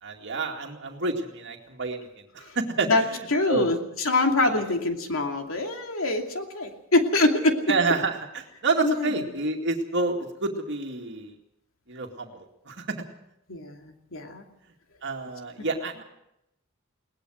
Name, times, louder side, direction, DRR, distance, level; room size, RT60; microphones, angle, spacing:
voice 1, 0.0-2.1 2.3-3.7 4.5-4.7 7.7-11.3 11.9-13.0 15.0-16.0, right 3 dB, 60° right, 2 dB, 2.3 m, -29 dB
voice 2, 3.3-7.6 8.8-9.1 13.5-14.4 15.6-15.7, left 2 dB, 85° left, 3 dB, 2.7 m, -24 dB
21.0 x 19.0 x 6.4 m, 0.80 s
head